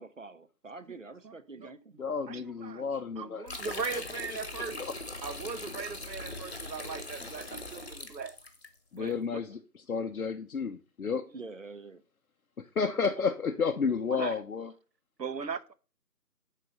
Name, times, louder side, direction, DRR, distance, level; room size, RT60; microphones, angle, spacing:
voice 1, 0.0-1.9 11.3-12.0, right 3 dB, 50° right, 0.7 m, -46 dB
voice 2, 1.2-2.0 2.3-2.8 3.2-4.8 5.2-8.4 8.9-9.4 14.1-14.3 15.2-15.7, right 5 dB, 85° right, 0.8 m, -39 dB
voice 3, 2.0-4.0 4.3-4.9 8.9-11.3 12.6-14.7, left 5 dB, 60° left, 0.6 m, -32 dB
sound 1, 3.5-8.7, left 2 dB, 40° left, 1.0 m, -41 dB
6.3 x 4.1 x 5.3 m
figure-of-eight pair, 170°, 49 cm